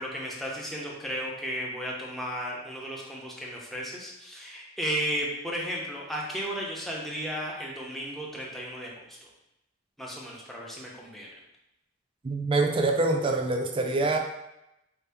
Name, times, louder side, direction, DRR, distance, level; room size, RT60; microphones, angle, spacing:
voice 1, 0.0-9.2 10.0-11.3, equal, ahead, -4 dB, 0.8 m, -34 dB
voice 2, 12.2-14.2, right 2 dB, 25° right, 3 dB, 0.4 m, -25 dB
4.5 x 2.8 x 3.4 m, 0.87 s
head